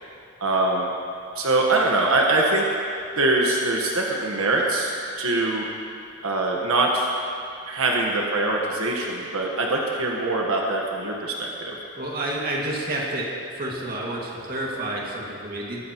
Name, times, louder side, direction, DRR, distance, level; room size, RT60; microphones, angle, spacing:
voice 1, 0.4-0.9 1.3-2.7 3.2-5.7 6.2-7.1 7.7-11.8, right 2 dB, 85° right, -1 dB, 1.4 m, -23 dB
voice 2, 12.0-13.3 13.6-15.9, right 1 dB, 45° right, -3 dB, 2.2 m, -29 dB
22.0 x 12.5 x 3.1 m, 2.5 s
head